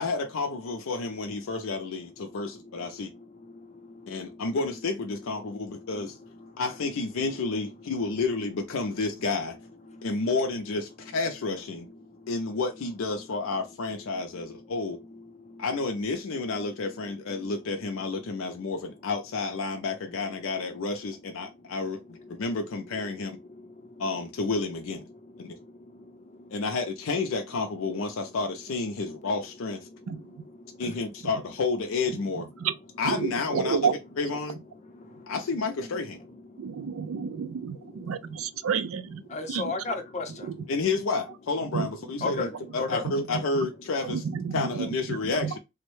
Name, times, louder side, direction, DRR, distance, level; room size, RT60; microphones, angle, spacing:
voice 1, 0.0-3.1 4.1-6.2 6.6-9.6 10.0-11.9 12.3-15.0 15.6-23.4 24.0-25.0 25.4-25.6 26.5-29.9 30.8-32.5 33.0-33.8 34.2-34.6 35.3-36.2 40.7-44.2 44.5-45.6, left 3 dB, 80° left, 0.5 m, -30 dB
voice 2, 23.6-23.9 25.9-26.6 30.7-30.9 34.9-35.3 36.5-36.9 39.3-40.5 42.2-42.5 42.8-43.0, left 3 dB, 35° left, 0.6 m, -34 dB
voice 3, 30.1-30.4 32.6-32.7 33.0-34.0 36.6-39.2 39.5-39.9 40.3-40.7 41.7-41.9 42.2-42.4 42.9-43.7 44.0-45.5, right 6 dB, 80° right, 0.4 m, -31 dB
3.5 x 2.1 x 3.0 m
head